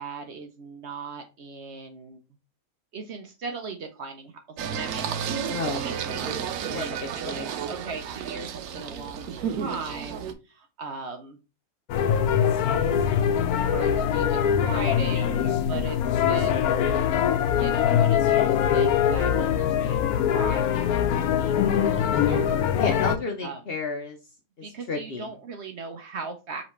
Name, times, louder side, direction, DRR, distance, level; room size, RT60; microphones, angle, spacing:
voice 1, 0.0-2.2 2.9-5.6 5.8-11.4 13.7-16.8 17.5-22.7 23.4-23.6 24.6-26.6, right 4 dB, 60° right, 5 dB, 0.8 m, -38 dB
Singing, 4.6-10.3, right 8 dB, 90° right, 1.1 m, -32 dB
voice 2, 5.4-6.3 6.7-7.0 7.2-7.5 22.7-24.2 24.6-25.3, left 3 dB, 55° left, 3 dB, 0.7 m, -32 dB
sound 1, 11.9-23.2, left 8 dB, 90° left, 1.1 m, -23 dB
5.0 x 3.1 x 3.1 m, 0.30 s
omnidirectional pair, 1.5 m